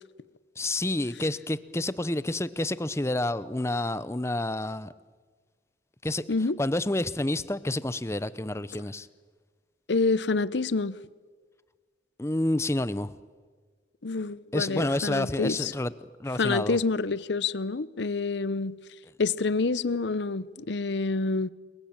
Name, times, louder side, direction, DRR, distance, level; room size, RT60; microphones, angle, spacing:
voice 1, 0.6-4.9 6.0-6.2 6.6-9.1 12.2-13.1 14.5-15.9 16.2-16.8, left 1 dB, 15° left, 0.7 m, -29 dB
voice 2, 6.3-6.6 9.9-11.0 14.0-15.7 16.4-18.8 19.2-21.5, left 3 dB, 75° left, 0.8 m, -27 dB
29.0 x 22.5 x 8.9 m
head